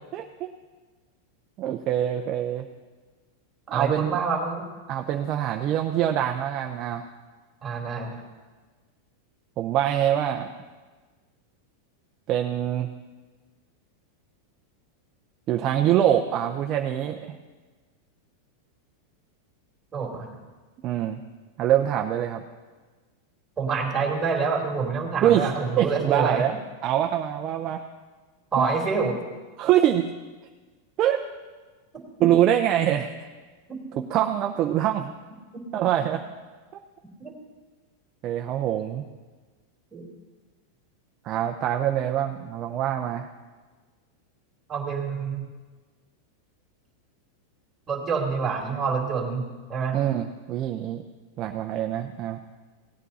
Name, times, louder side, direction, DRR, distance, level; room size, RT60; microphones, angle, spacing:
voice 1, 0.1-0.5 1.6-2.7 3.7-4.2 4.9-7.1 9.6-10.5 12.3-12.9 15.5-17.4 20.8-21.2 21.6-22.4 25.2-26.6 26.8-27.8 28.6-28.7 29.6-30.1 31.0-31.2 32.2-33.1 34.0-35.1 35.7-36.2 38.2-39.0 41.2-43.3 49.9-51.0 51.4-52.4, right 11 dB, 35° right, 4 dB, 0.6 m, -24 dB
voice 2, 3.7-4.7 7.6-8.2 19.9-20.3 23.6-26.4 28.5-29.2 32.2-32.3 33.7-33.8 35.5-35.6 37.2-37.3 39.9-40.1 44.7-45.4 47.9-49.4 49.7-50.0, right 5 dB, 20° right, -1 dB, 2.6 m, -27 dB
17.0 x 9.0 x 4.2 m, 1.3 s
supercardioid pair, 140°, 0 cm